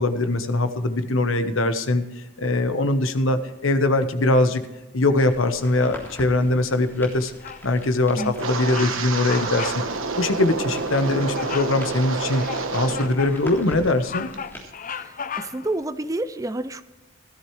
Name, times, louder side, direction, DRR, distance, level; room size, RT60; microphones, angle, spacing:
voice 1, 0.0-4.6 4.9-7.3 7.6-9.8 10.2-12.4 12.7-14.3, left 2 dB, 70° left, 9 dB, 1.1 m, -22 dB
sound 1, 5.1-14.6, equal, 10° left, 3.4 m, -44 dB
Bird vocalization bird call bird song, 7.4-7.8 8.2-8.4 8.7-9.0 9.2-9.8 10.1-10.3 11.4-11.8 12.3-13.4 13.8-15.7, left 7 dB, 40° left, 0.5 m, -35 dB
Wind, 8.3-13.2 13.5-13.9 14.3-14.6, right 3 dB, 70° right, 1.2 m, -28 dB
voice 2, 14.9-16.8, right 2 dB, 15° right, 12 dB, 0.4 m, -29 dB
17.0 x 13.0 x 3.2 m, 1.0 s
head